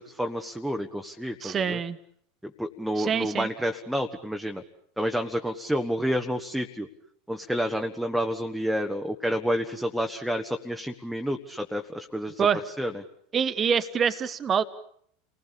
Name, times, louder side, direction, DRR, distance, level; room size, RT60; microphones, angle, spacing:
voice 1, 0.0-1.8 2.4-4.6 5.0-6.9 7.3-12.5 12.8-13.0, equal, ahead, 4 dB, 1.7 m, -29 dB
voice 2, 1.4-2.0 3.0-3.5 12.4-12.6 13.3-14.6, right 7 dB, 30° right, 11 dB, 1.4 m, -25 dB
29.5 x 20.0 x 8.7 m, 0.68 s
figure-of-eight pair, 80°, 0 cm